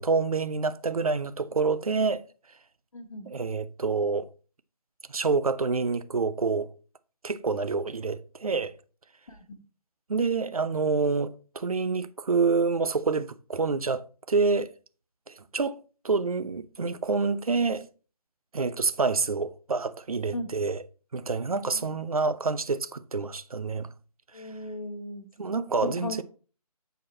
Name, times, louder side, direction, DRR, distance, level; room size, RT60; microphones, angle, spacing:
voice 1, 0.0-2.2 3.3-4.3 5.1-6.7 7.2-8.7 10.1-14.7 15.3-17.8 18.5-20.8 21.1-23.9 25.4-26.2, right 4 dB, 65° right, 0.8 m, -27 dB
voice 2, 2.9-3.3 9.3-9.4 20.3-20.5 21.7-22.0 24.3-25.3 25.8-26.2, left 1 dB, 55° left, 1.3 m, -36 dB
7.9 x 4.7 x 4.4 m
figure-of-eight pair, 145°, 20 cm